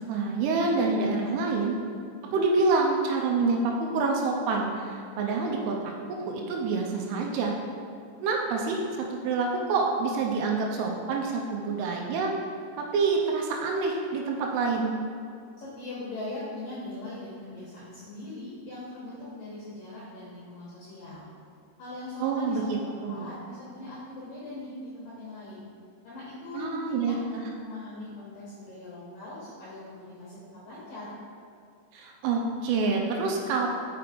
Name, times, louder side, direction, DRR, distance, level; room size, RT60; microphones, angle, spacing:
voice 1, 0.1-1.8 2.3-5.8 6.1-7.5 8.2-8.8 9.1-12.3 12.8-14.9 22.2-22.8 23.0-23.3 26.5-27.4 31.9-33.7, right 4 dB, 80° right, 1 dB, 3.0 m, -27 dB
voice 2, 15.6-21.3 21.8-25.6 26.0-30.4 30.6-31.1, left 2 dB, 75° left, -8 dB, 2.0 m, -40 dB
6.3 x 5.9 x 5.1 m, 2.3 s
omnidirectional pair, 6.0 m